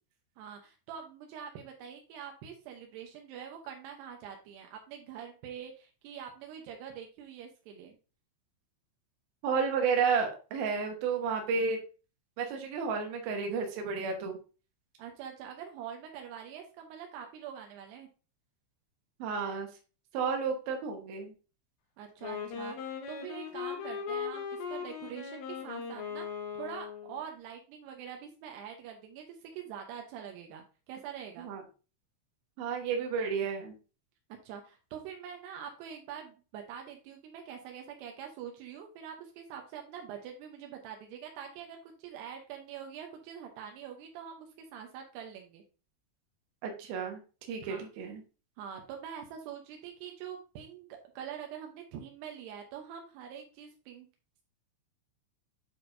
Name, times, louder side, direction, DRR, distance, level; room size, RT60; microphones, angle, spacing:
voice 1, 0.4-8.0 15.0-18.1 22.0-26.3 26.6-31.5 34.4-45.6 47.6-47.9 48.6-50.9 51.2-54.1, right 8 dB, 90° right, 3 dB, 2.3 m, -44 dB
voice 2, 9.4-11.8 12.4-14.4 19.2-19.7 20.1-21.3 31.4-31.6 32.6-33.7 46.6-47.2 47.5-48.2, right 5 dB, 70° right, 3 dB, 2.3 m, -31 dB
Wind instrument woodwind instrument, 22.2-27.2, left 6 dB, 70° left, 2.9 m, -39 dB
9.3 x 4.3 x 2.7 m, 0.34 s
omnidirectional pair, 5.9 m